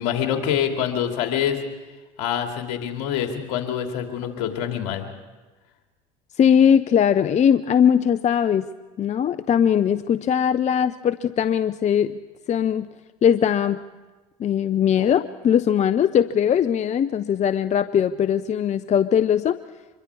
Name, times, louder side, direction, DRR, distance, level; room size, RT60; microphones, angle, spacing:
voice 1, 0.0-1.6 2.2-5.0, left 9 dB, 70° left, 4 dB, 2.7 m, -25 dB
voice 2, 6.4-8.7 9.0-12.1 12.5-12.9 13.2-13.8 14.4-19.6, left 8 dB, 40° left, 13 dB, 0.6 m, -20 dB
25.5 x 22.5 x 4.8 m, 1.2 s
hypercardioid pair, 75°, 19 cm